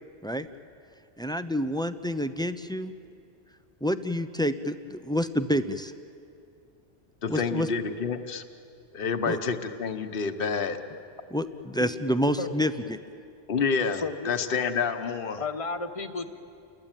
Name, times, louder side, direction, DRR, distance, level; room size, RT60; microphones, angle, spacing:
voice 1, 1.2-2.9 3.8-5.9 7.3-7.7 9.3-9.4 11.3-13.0, equal, 5° left, 11 dB, 0.6 m, -28 dB
voice 2, 7.2-8.4 8.9-10.8 13.5-15.4, left 5 dB, 50° left, 7 dB, 1.3 m, -28 dB
voice 3, 11.8-12.5 13.9-14.3 15.4-16.3, left 3 dB, 30° left, 7 dB, 1.3 m, -34 dB
29.5 x 22.0 x 9.1 m, 2.6 s
omnidirectional pair, 1.2 m